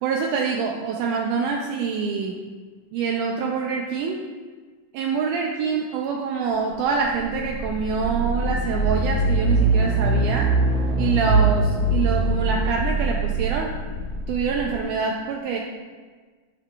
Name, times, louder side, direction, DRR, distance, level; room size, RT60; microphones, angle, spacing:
voice 1, 0.0-2.4 2.9-4.2 4.9-10.5 11.0-13.7 14.3-15.6, right 5 dB, 85° right, 0 dB, 1.8 m, -25 dB
sound 1, 6.8-14.8, right 2 dB, 70° right, 1.8 m, -22 dB
12.5 x 5.9 x 2.3 m, 1.4 s
omnidirectional pair, 4.3 m